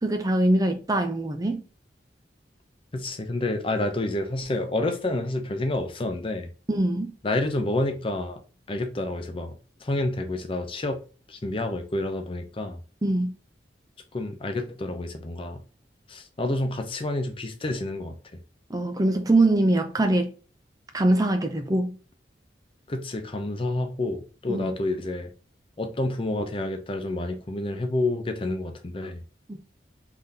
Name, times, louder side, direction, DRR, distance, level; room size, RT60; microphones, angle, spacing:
voice 1, 0.0-1.6 6.7-7.1 13.0-13.3 18.7-20.3 20.9-21.9 24.5-24.7, right 2 dB, 20° right, 0.5 m, -23 dB
voice 2, 2.9-6.5 7.2-8.4 8.7-9.5 9.8-11.0 11.3-12.8 14.1-15.6 16.1-18.2 22.9-25.3 25.8-29.2, left 2 dB, 30° left, 0.6 m, -29 dB
3.7 x 3.5 x 2.7 m
head